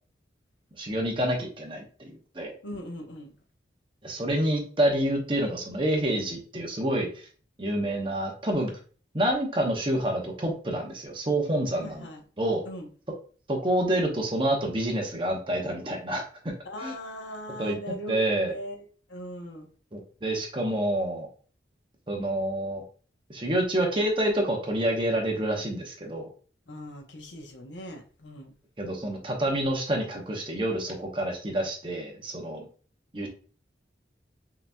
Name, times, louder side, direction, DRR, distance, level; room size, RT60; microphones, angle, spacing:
voice 1, 0.8-2.5 4.0-7.1 7.6-8.7 9.1-12.1 12.4-12.6 13.5-16.2 16.8-16.9 17.6-17.8 18.1-18.5 19.9-21.3 22.1-22.8 23.3-26.3 28.8-32.7 33.1-33.3, right 1 dB, 25° right, 0.9 m, -28 dB
voice 2, 2.6-3.4 11.8-12.2 12.6-12.9 16.6-19.7 26.7-28.5, equal, 80° left, 0.9 m, -40 dB
5.7 x 2.8 x 2.2 m
head